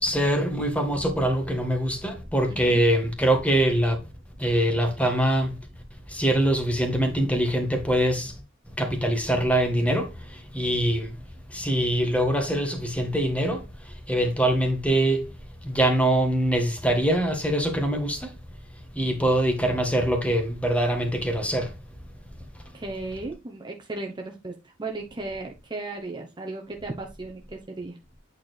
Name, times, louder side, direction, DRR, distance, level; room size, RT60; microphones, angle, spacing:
voice 1, 0.0-4.0 4.4-5.6 6.1-8.4 8.8-11.2 11.5-15.2 15.6-18.3 18.9-21.7, right 1 dB, 5° left, 1.4 m, -24 dB
voice 2, 2.5-2.8 22.7-28.0, right 2 dB, 25° right, 0.9 m, -36 dB
8.5 x 4.4 x 3.3 m
head